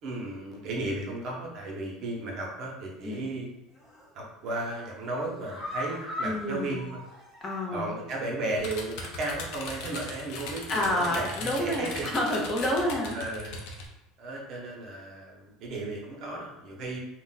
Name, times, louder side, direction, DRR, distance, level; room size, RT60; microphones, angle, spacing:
voice 1, 0.0-3.5 4.1-7.0 7.7-12.4 13.1-13.6 14.2-17.0, right 2 dB, 50° right, -1 dB, 0.8 m, -35 dB
sound 1, 3.7-4.1 4.5-7.9 8.2-8.3 8.7-8.8, left 1 dB, 5° left, 1.4 m, -40 dB
voice 2, 6.2-6.8 7.4-8.0 10.7-13.2, left 1 dB, 25° left, -1 dB, 0.6 m, -29 dB
sound 2, 8.6-13.9, left 3 dB, 70° left, 0.6 m, -39 dB
2.4 x 2.1 x 3.9 m, 0.96 s
supercardioid pair, 130°, 0 cm